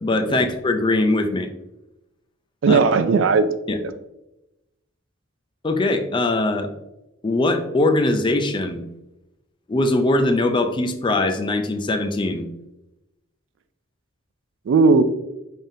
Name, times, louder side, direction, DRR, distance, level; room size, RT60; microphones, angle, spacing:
voice 1, 0.0-1.5 2.7-2.8 3.7-3.8 5.6-6.7 7.2-8.8 9.7-12.4, left 2 dB, 25° left, 7 dB, 0.4 m, -21 dB
voice 2, 2.6-3.5 3.8-3.9 14.7-15.0, right 4 dB, 65° right, 11 dB, 0.3 m, -17 dB
5.5 x 3.6 x 2.6 m, 0.93 s
head